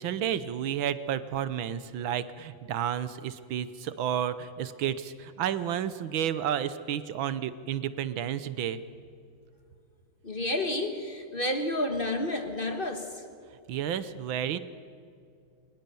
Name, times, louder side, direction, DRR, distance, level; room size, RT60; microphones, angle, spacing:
voice 1, 0.0-8.8 13.7-14.6, right 9 dB, 80° right, 14 dB, 1.6 m, -31 dB
voice 2, 10.2-13.1, left 1 dB, 30° left, 6 dB, 1.4 m, -30 dB
22.0 x 19.5 x 7.0 m, 2.5 s
omnidirectional pair, 2.2 m